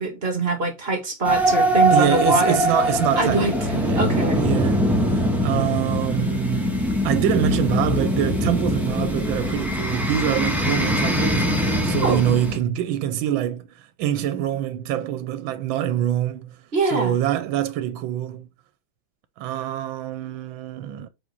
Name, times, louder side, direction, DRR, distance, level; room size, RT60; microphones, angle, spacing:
voice 1, 0.0-2.6 3.2-4.4 12.0-12.2 16.7-17.2, right 3 dB, 30° right, 1.8 m, -23 dB
sound 1, 1.2-12.6, equal, ahead, 1.2 m, -22 dB
voice 2, 1.9-18.5 19.4-21.1, right 11 dB, 80° right, 1.5 m, -25 dB
5.3 x 5.2 x 4.0 m
omnidirectional pair, 2.1 m